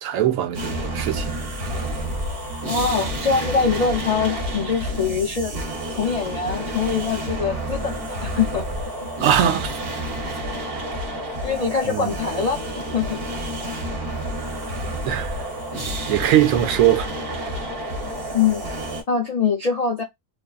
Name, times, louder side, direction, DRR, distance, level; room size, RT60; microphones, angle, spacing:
voice 1, 0.0-1.4 9.2-9.8 11.8-12.2 15.0-15.4 16.1-17.1, right 11 dB, 80° right, 1.0 m, -21 dB
sound 1, 0.5-19.0, right 1 dB, 50° right, 1.0 m, -29 dB
voice 2, 2.7-5.5 5.9-8.6 11.4-13.2 18.3-18.6 19.1-20.0, left 6 dB, 75° left, 0.3 m, -23 dB
2.6 x 2.4 x 2.3 m
omnidirectional pair, 1.4 m